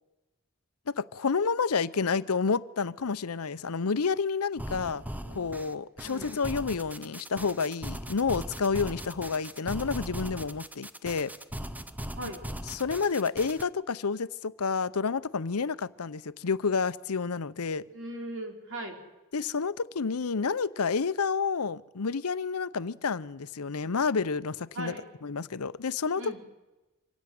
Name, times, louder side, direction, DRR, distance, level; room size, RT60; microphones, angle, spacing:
voice 1, 0.9-5.0 5.3-11.3 12.7-17.8 19.3-25.0 25.2-26.4, left 5 dB, 75° left, 15 dB, 0.7 m, -29 dB
sound 1, 4.6-13.6, right 1 dB, 5° right, 0.8 m, -39 dB
voice 2, 6.0-6.3 12.2-12.4 17.9-19.0 24.7-25.1 26.2-26.4, right 1 dB, 60° right, 3 dB, 4.3 m, -38 dB
25.0 x 16.5 x 9.4 m, 1.1 s
head